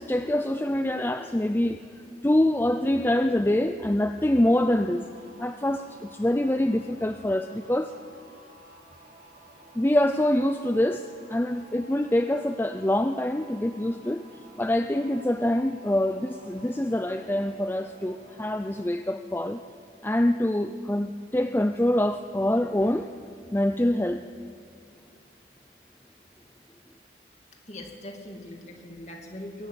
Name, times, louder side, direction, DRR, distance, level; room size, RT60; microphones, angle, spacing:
voice 1, 0.0-1.8 2.2-5.0 5.4-7.9 9.7-14.2 14.6-19.6 20.0-23.1 23.5-24.2, left 1 dB, 10° left, 8 dB, 0.4 m, -25 dB
sound 1, 4.2-18.8, right 2 dB, 45° right, 3.6 m, -52 dB
voice 2, 27.7-29.7, left 1 dB, 40° left, 3 dB, 2.5 m, -41 dB
22.0 x 17.0 x 8.4 m, 2.3 s
head